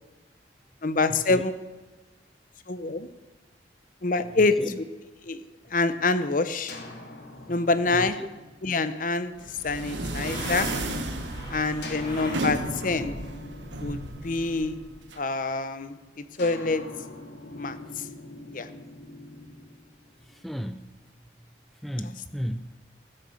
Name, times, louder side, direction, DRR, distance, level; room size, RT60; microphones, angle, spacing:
voice 1, 0.8-1.5 2.7-3.1 4.0-4.6 5.2-5.4 5.7-6.8 7.5-8.2 8.6-9.3 9.6-10.7 11.5-13.1 13.8-14.8 15.2-16.8 17.6-18.0 18.5-18.7, left 3 dB, 45° left, 12 dB, 0.8 m, -26 dB
sound 1, 6.7-10.5 11.8-15.4 16.4-20.5, left 1 dB, 70° left, 2.4 m, -43 dB
voice 2, 7.9-8.3 20.3-21.0 21.8-22.8, equal, ahead, 10 dB, 0.4 m, -34 dB
sound 2, 9.4-15.2, right 2 dB, 80° right, 1.4 m, -34 dB
sound 3, 9.7-13.0 13.3-14.6, equal, 25° left, 4.0 m, -41 dB
15.5 x 7.8 x 7.1 m, 1.2 s
head